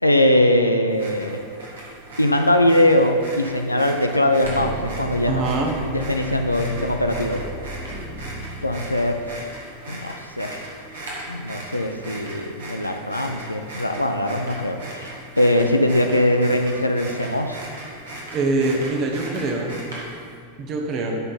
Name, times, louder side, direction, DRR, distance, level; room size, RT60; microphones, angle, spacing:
voice 1, 0.0-1.4 2.2-5.4 5.9-7.4 8.6-9.2 9.9-10.6 11.3-17.6, left 1 dB, 85° left, 5 dB, 0.4 m, -21 dB
sound 1, 0.9-20.3, right 1 dB, 65° right, 1.8 m, -38 dB
sound 2, 4.4-9.5, equal, 20° right, 1.7 m, -35 dB
voice 2, 5.3-5.7 18.3-19.7 20.6-21.2, right 2 dB, 35° right, 1 dB, 1.1 m, -23 dB
10.5 x 3.9 x 4.0 m, 2.3 s
figure-of-eight pair, 90°, 0 cm